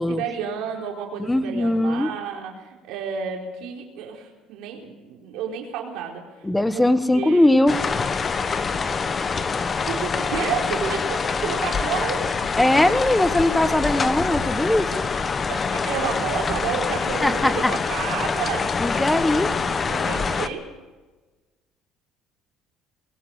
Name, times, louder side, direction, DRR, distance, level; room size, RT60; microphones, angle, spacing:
voice 1, 0.1-6.5 6.7-6.9 7.1-7.5 8.5-8.8 9.2-12.3 15.5-20.7, right 7 dB, 80° right, 0 dB, 4.2 m, -31 dB
voice 2, 1.2-2.1 6.4-7.8 12.6-15.1 17.2-17.7 18.8-19.5, left 1 dB, 10° left, 12 dB, 1.2 m, -20 dB
sound 1, 7.7-20.5, left 5 dB, 30° left, 1.3 m, -25 dB
21.5 x 18.5 x 6.6 m, 1.2 s
cardioid pair, 110°, 0 cm